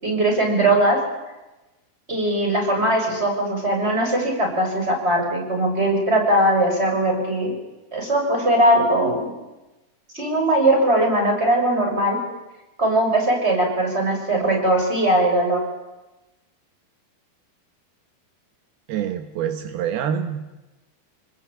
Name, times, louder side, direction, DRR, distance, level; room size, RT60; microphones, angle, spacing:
voice 1, 0.0-1.0 2.1-7.5 7.9-9.3 10.1-12.2 12.8-15.6, right 1 dB, 15° right, 1 dB, 6.7 m, -20 dB
voice 2, 18.9-20.4, right 9 dB, 75° right, 7 dB, 3.0 m, -26 dB
27.0 x 20.5 x 8.7 m, 1.1 s
omnidirectional pair, 4.5 m